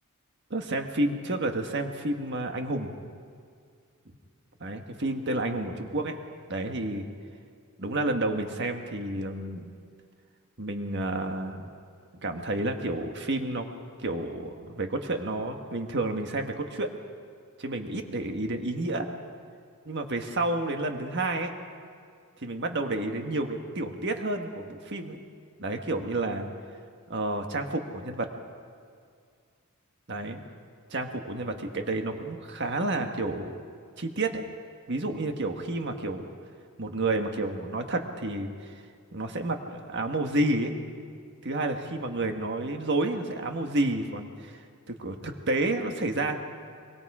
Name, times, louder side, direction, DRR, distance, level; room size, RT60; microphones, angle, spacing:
voice 1, 0.5-2.9 4.6-6.2 6.5-7.0 7.8-9.7 10.6-11.7 12.2-13.7 14.0-16.9 17.6-19.1 19.8-21.5 22.4-25.2 25.6-26.5 27.1-28.3 30.1-30.4 30.9-33.6 34.0-34.4 34.9-36.3 36.8-38.7 39.1-40.7 41.4-44.6 44.9-46.4, right 2 dB, 50° right, 5 dB, 1.6 m, -30 dB
24.0 x 22.5 x 4.9 m, 2.2 s
head